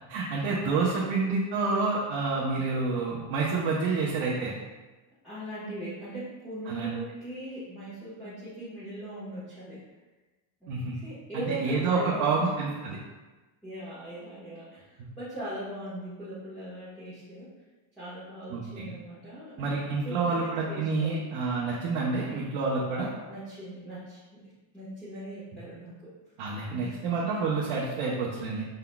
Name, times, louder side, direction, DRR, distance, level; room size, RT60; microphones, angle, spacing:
voice 1, 0.1-4.5 6.7-6.9 10.7-10.9 11.3-13.0 18.5-18.9 19.6-23.1 26.4-28.6, right 4 dB, 80° right, -5 dB, 0.9 m, -28 dB
voice 2, 0.8-1.2 5.2-9.8 10.6-10.7 11.0-12.5 13.6-17.5 18.0-21.3 23.3-24.4 24.7-26.1 26.7-27.1 28.6-28.7, right 1 dB, ahead, -14 dB, 1.2 m, -40 dB
5.5 x 3.9 x 2.3 m, 1.2 s
cardioid pair, 160°, 49 cm